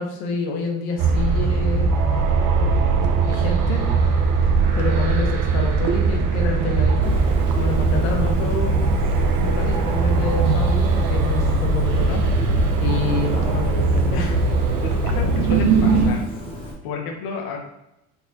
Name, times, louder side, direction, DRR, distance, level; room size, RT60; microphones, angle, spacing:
voice 1, 0.0-1.9 3.2-3.9 4.7-7.1 7.6-9.0 9.4-12.2 12.8-14.4, left 3 dB, 90° left, 2 dB, 1.0 m, -28 dB
sound 1, 1.0-16.1, right 4 dB, 50° right, 0.7 m, -20 dB
Bird, 7.0-16.7, left 1 dB, 15° left, 0.8 m, -35 dB
voice 2, 14.8-16.2 16.8-17.6, left 4 dB, 55° left, 1 dB, 0.9 m, -31 dB
4.1 x 3.9 x 2.7 m, 0.89 s
supercardioid pair, 130°, 41 cm